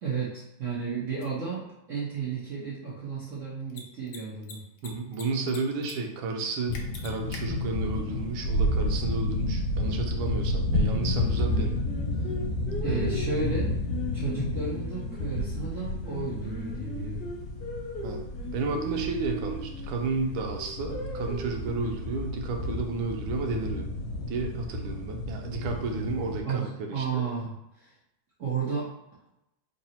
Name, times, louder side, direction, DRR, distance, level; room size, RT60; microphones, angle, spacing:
voice 1, 0.0-1.6 1.9-4.6 12.8-13.8 14.1-17.3 26.4-27.9 28.4-28.9, right 5 dB, 55° right, -8 dB, 0.9 m, -33 dB
Mechanisms, 1.2-1.3 3.6-3.8 4.1-4.2 4.4-5.2 5.5-5.9 6.2-6.3 6.7-7.4, left 5 dB, 75° left, 1.3 m, -42 dB
voice 2, 4.8-11.8 12.8-13.2 14.3-14.4 18.0-18.2 18.5-23.9 24.3-27.2, right 4 dB, 90° right, 2 dB, 1.4 m, -32 dB
sound 1, 6.7-26.4, left 1 dB, 90° left, 1.4 m, -31 dB
Singing, 10.9-15.6 16.0-20.0 20.5-21.7, right 1 dB, 40° left, 1.0 m, -38 dB
3.8 x 2.0 x 4.1 m, 0.87 s
omnidirectional pair, 2.1 m